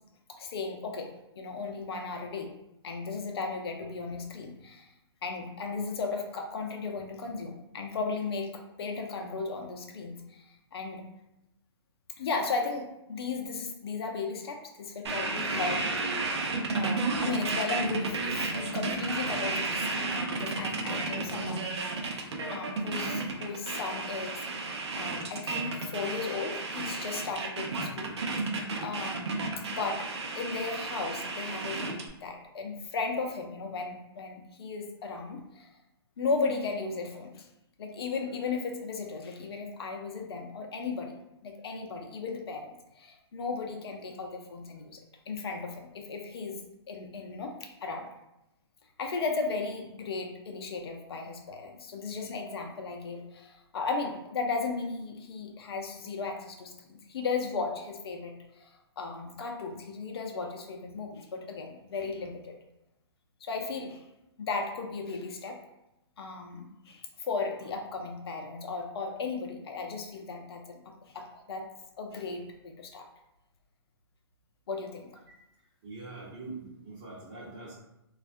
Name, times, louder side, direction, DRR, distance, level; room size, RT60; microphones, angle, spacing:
voice 1, 0.4-2.5 2.8-4.9 5.2-11.1 12.2-15.9 16.7-24.6 25.0-28.2 28.8-29.4 29.7-35.7 36.2-37.5 37.8-41.2 41.4-42.7 42.9-45.0 45.3-46.6 46.9-48.1 49.0-62.5 63.4-64.1 64.4-65.6 66.2-71.7 72.0-73.0 74.7-75.1, left 4 dB, 65° left, 2 dB, 0.5 m, -36 dB
sound 1, 15.0-32.1, right 3 dB, 75° right, 0.5 m, -32 dB
voice 2, 75.8-77.7, right 3 dB, 40° right, -10 dB, 0.9 m, -43 dB
2.3 x 2.2 x 2.5 m, 0.89 s
hypercardioid pair, 130°, 14 cm